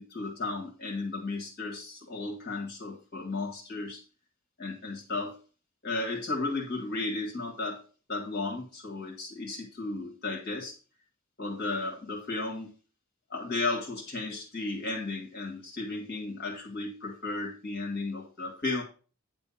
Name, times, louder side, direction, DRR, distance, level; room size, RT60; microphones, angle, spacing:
voice 1, 0.0-4.0 4.6-5.4 5.8-7.8 8.1-10.7 11.4-12.7 13.3-18.8, left 3 dB, 50° left, -1 dB, 1.9 m, -34 dB
9.6 x 3.4 x 7.0 m, 0.36 s
head